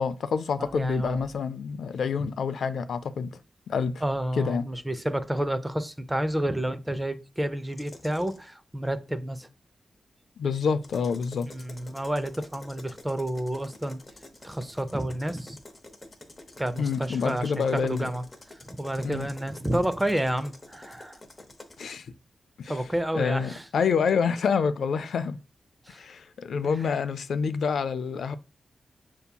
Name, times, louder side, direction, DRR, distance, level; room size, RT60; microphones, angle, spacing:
voice 1, 0.0-3.3 3.7-4.0 4.4-4.6 10.4-11.5 16.8-18.1 19.0-19.3 21.8-22.1 22.6-22.8 23.1-25.4 25.9-28.4, left 6 dB, 85° left, 0.3 m, -27 dB
voice 2, 0.6-1.3 4.0-9.5 11.5-14.0 14.4-15.6 16.6-18.2 18.5-21.2 22.7-23.6 25.9-26.0 26.8-26.9, right 1 dB, 10° right, 0.4 m, -30 dB
sound 1, 7.7-8.4 10.7-21.9, left 2 dB, 25° left, 0.7 m, -48 dB
6.7 x 2.7 x 2.2 m
wide cardioid pair, 135°, 0 cm